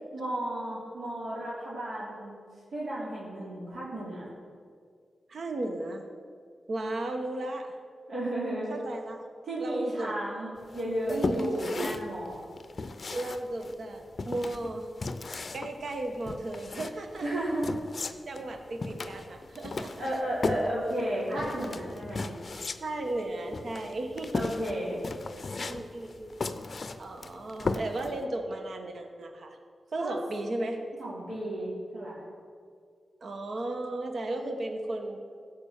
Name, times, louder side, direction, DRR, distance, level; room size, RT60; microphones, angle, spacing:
voice 1, 0.1-2.4 2.7-4.3 8.1-8.7 9.5-12.4 17.2-17.7 20.0-22.4 24.3-25.0 30.0-30.2 31.0-32.2, right 1 dB, 75° right, -8 dB, 3.2 m, -33 dB
voice 2, 5.3-6.0 6.7-7.7 8.7-9.2 9.6-10.2 11.1-12.1 13.1-14.9 15.5-17.3 18.3-20.1 22.8-24.4 25.6-26.4 27.0-29.6 29.9-30.8 33.2-35.2, right 2 dB, 55° right, 5 dB, 1.1 m, -35 dB
sound 1, 10.7-28.2, left 3 dB, 40° left, 0.6 m, -36 dB
15.5 x 5.3 x 7.2 m, 2.1 s
wide cardioid pair, 120°, 0 cm